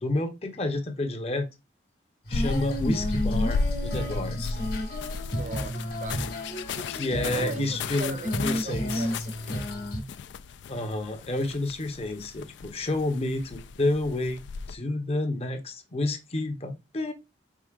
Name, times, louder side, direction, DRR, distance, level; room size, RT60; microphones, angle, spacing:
voice 1, 0.0-1.5 2.3-4.6 6.9-8.1 8.4-9.1 10.7-17.1, left 2 dB, 30° left, 0.7 m, -30 dB
Female singing, 2.2-10.0, equal, 50° left, 1.2 m, -31 dB
sound 1, 2.3-14.8, left 4 dB, 70° left, 0.3 m, -35 dB
voice 2, 5.3-6.2 7.2-9.7, right 3 dB, 40° right, 0.5 m, -40 dB
4.7 x 3.7 x 2.4 m
head